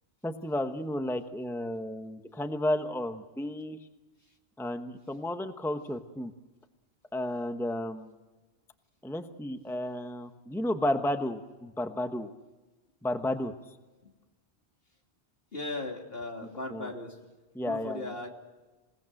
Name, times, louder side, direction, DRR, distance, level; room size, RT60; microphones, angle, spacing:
voice 1, 0.2-3.8 4.6-6.3 7.1-8.1 9.0-12.3 13.0-13.5 16.7-16.9 17.5-18.1, left 1 dB, ahead, 7 dB, 1.0 m, -32 dB
voice 2, 15.5-17.2 17.6-18.3, left 2 dB, 60° left, 2 dB, 3.2 m, -37 dB
27.5 x 18.5 x 7.7 m, 1.2 s
omnidirectional pair, 1.1 m